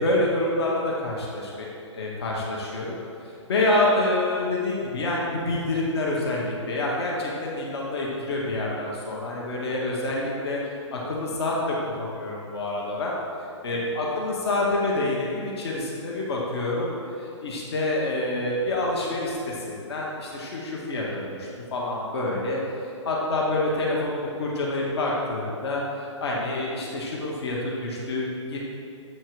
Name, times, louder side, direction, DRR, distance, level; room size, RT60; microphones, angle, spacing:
voice 1, 0.0-2.9 3.5-10.6 10.9-13.1 13.6-22.6 23.0-28.6, left 2 dB, 55° left, -3 dB, 1.4 m, -27 dB
7.9 x 4.5 x 4.7 m, 2.7 s
hypercardioid pair, 140°, 16 cm